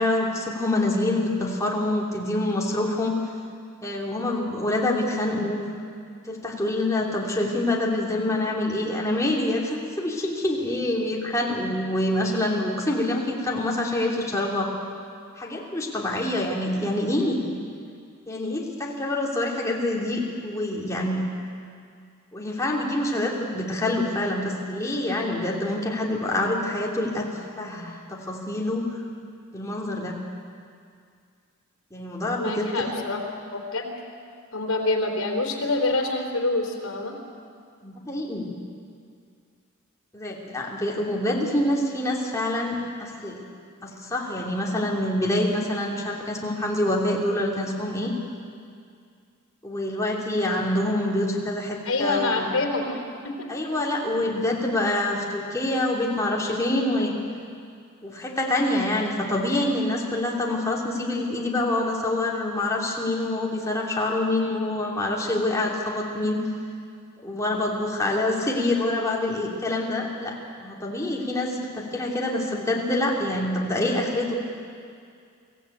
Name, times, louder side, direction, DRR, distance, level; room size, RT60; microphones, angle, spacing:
voice 1, 0.0-3.1 3.8-5.6 6.3-14.7 15.4-17.4 18.3-21.2 22.3-27.3 27.6-28.8 29.5-30.2 31.9-32.7 37.8-38.5 40.1-43.4 43.8-48.1 49.6-52.4 53.5-57.1 58.0-66.4 67.2-74.4, left 1 dB, 15° left, -3 dB, 3.0 m, -26 dB
voice 2, 32.4-33.2 33.5-33.9 34.5-37.1 51.8-53.5, left 2 dB, 75° left, 1 dB, 3.7 m, -26 dB
24.5 x 15.5 x 8.6 m, 2.3 s
head